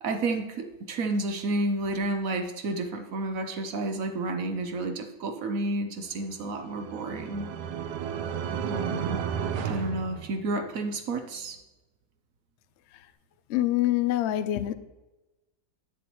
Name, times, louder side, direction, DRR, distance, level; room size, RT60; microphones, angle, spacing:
voice 1, 0.0-7.5 8.7-9.3 9.6-11.6, right 2 dB, 65° right, 6 dB, 1.0 m, -31 dB
sound 1, 6.3-10.9, right 7 dB, 85° right, 1.2 m, -33 dB
voice 2, 13.5-14.7, left 14 dB, 85° left, 12 dB, 0.6 m, -25 dB
9.7 x 7.0 x 3.0 m, 1.1 s
omnidirectional pair, 1.7 m